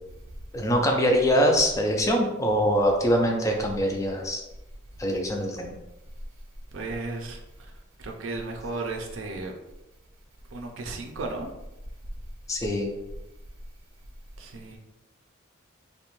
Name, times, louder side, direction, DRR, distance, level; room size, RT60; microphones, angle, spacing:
voice 1, 0.5-4.4 5.0-5.8 12.5-12.9, equal, 15° left, 2 dB, 0.3 m, -23 dB
voice 2, 6.7-7.4 8.0-9.5 10.5-11.5 14.4-14.8, right 3 dB, 65° right, 3 dB, 0.4 m, -34 dB
2.4 x 2.1 x 3.0 m, 0.95 s
head